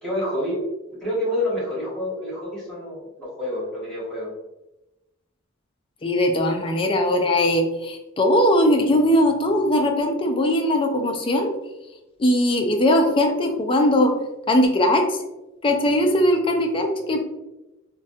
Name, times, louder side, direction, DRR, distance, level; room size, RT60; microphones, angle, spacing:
voice 1, 0.0-0.6 0.9-4.3, left 1 dB, 5° left, -8 dB, 1.4 m, -28 dB
voice 2, 6.0-11.5 12.2-14.1 14.5-15.2 15.6-17.2, left 1 dB, 25° left, 3 dB, 0.4 m, -20 dB
3.2 x 2.3 x 2.7 m, 0.97 s
head